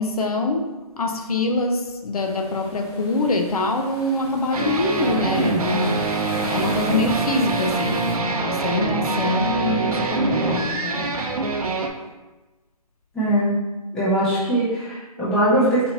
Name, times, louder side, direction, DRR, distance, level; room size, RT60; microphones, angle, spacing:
voice 1, 0.0-6.2 6.5-11.2, left 2 dB, 70° left, 4 dB, 0.7 m, -24 dB
sound 1, 2.1-8.2, left 2 dB, 40° left, 0.9 m, -38 dB
sound 2, 4.5-11.9, right 3 dB, 70° right, 0.6 m, -24 dB
voice 2, 13.1-13.5 13.9-15.9, right 1 dB, 5° left, -11 dB, 0.6 m, -21 dB
4.3 x 2.7 x 4.2 m, 1.2 s
hypercardioid pair, 160°, 19 cm